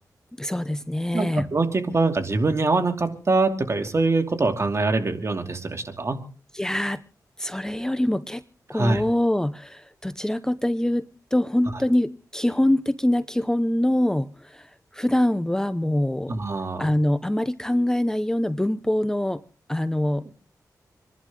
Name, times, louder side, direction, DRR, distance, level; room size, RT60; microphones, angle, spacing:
voice 1, 0.4-1.5 6.5-7.0 7.4-8.4 8.7-11.0 11.3-16.3 16.8-19.4 19.7-20.3, left 1 dB, 10° left, 12 dB, 0.7 m, -24 dB
voice 2, 1.1-6.2 8.7-9.0 16.3-16.9 20.2-20.3, right 3 dB, 40° right, 5 dB, 2.7 m, -24 dB
27.5 x 11.5 x 3.7 m, 0.39 s
wide cardioid pair, 85°, 7 cm